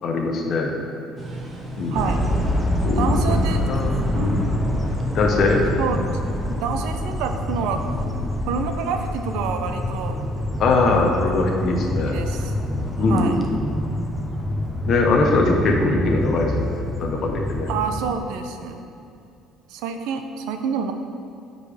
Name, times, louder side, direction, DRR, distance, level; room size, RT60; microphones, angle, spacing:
voice 1, 0.0-0.8 1.8-2.0 2.8-3.4 3.7-4.5 5.1-5.6 10.6-12.2 13.0-13.4 14.9-16.5 17.0-17.7, left 3 dB, 35° left, 1 dB, 0.8 m, -21 dB
sound 1, 1.2-6.9, right 1 dB, 25° right, 0.9 m, -36 dB
voice 2, 1.9-2.2 3.0-3.6 4.1-4.3 5.8-6.0 6.6-7.8 8.5-10.2 12.1-12.5 13.0-13.4 17.7-18.8 19.7-20.9, right 6 dB, 80° right, 6 dB, 0.7 m, -27 dB
sound 2, 2.0-18.0, left 1 dB, ahead, 0.6 m, -26 dB
8.6 x 5.1 x 5.0 m, 2.5 s
cardioid pair, 175°, 0 cm